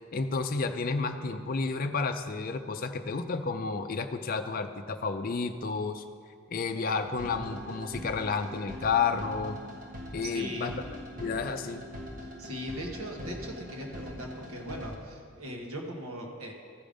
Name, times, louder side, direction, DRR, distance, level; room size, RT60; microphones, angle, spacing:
voice 1, 0.1-6.0 6.5-9.6 10.1-10.7 11.2-11.9, left 4 dB, 40° left, 7 dB, 0.5 m, -31 dB
sound 1, 6.7-15.0, equal, 40° right, 1.3 m, -42 dB
voice 2, 10.2-10.7 12.2-16.5, equal, 85° right, 1 dB, 1.4 m, -39 dB
14.0 x 5.1 x 5.2 m, 2.2 s
head